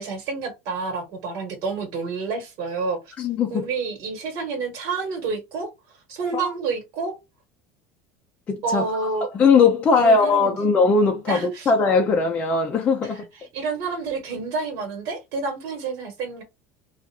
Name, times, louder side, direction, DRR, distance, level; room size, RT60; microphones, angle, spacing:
voice 1, 0.0-3.1 3.5-5.7 6.1-7.1 8.6-9.3 10.0-10.5 11.3-11.7 13.0-13.3 13.5-16.4, right 4 dB, 50° right, 1.4 m, -29 dB
voice 2, 3.2-3.7 8.5-8.8 9.3-13.2, left 4 dB, 20° left, 0.5 m, -19 dB
2.5 x 2.4 x 4.1 m
cardioid pair, 165°, 6 cm